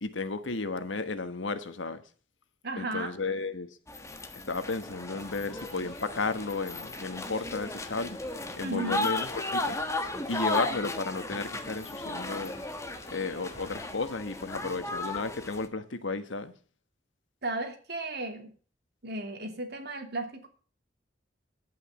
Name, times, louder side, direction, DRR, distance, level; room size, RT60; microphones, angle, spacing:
voice 1, 0.0-2.0 2.8-3.7 4.4-8.2 8.5-9.8 10.3-12.5 13.1-16.5, left 3 dB, 80° left, 1.4 m, -33 dB
voice 2, 2.6-3.1 8.6-9.1 17.4-18.5 19.0-20.5, right 2 dB, 60° right, 2.7 m, -35 dB
sound 1, 3.9-15.7, left 2 dB, 15° left, 1.4 m, -35 dB
sound 2, 5.1-15.1, left 2 dB, 30° left, 2.3 m, -51 dB
11.0 x 9.1 x 8.2 m
head